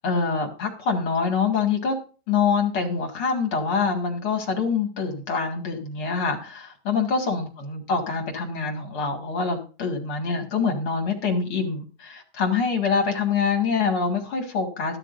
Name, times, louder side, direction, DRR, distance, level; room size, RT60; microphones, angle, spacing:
voice 1, 0.0-2.0 2.3-15.0, left 5 dB, 45° left, 2 dB, 1.7 m, -25 dB
14.0 x 12.5 x 2.6 m, 0.36 s
omnidirectional pair, 5.2 m